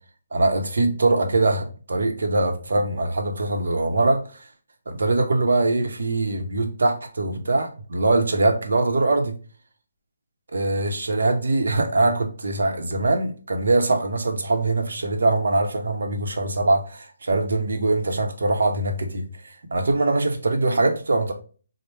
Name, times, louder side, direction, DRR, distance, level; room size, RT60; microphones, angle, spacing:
voice 1, 0.3-4.4 4.9-9.3 10.5-21.3, right 2 dB, 75° right, 0.8 m, -22 dB
3.3 x 2.1 x 4.1 m
hypercardioid pair, 165°, 0 cm